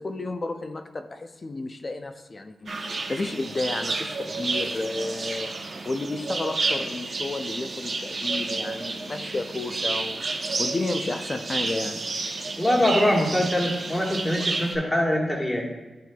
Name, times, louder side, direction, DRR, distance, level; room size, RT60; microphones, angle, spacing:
voice 1, 0.0-10.2 10.6-12.0, left 2 dB, 35° left, 7 dB, 0.4 m, -32 dB
sound 1, 2.7-14.8, right 3 dB, 50° right, 0.8 m, -31 dB
voice 2, 12.6-15.6, left 1 dB, 15° left, -2 dB, 1.5 m, -23 dB
11.0 x 4.4 x 2.3 m, 1.1 s
wide cardioid pair, 100°, 0 cm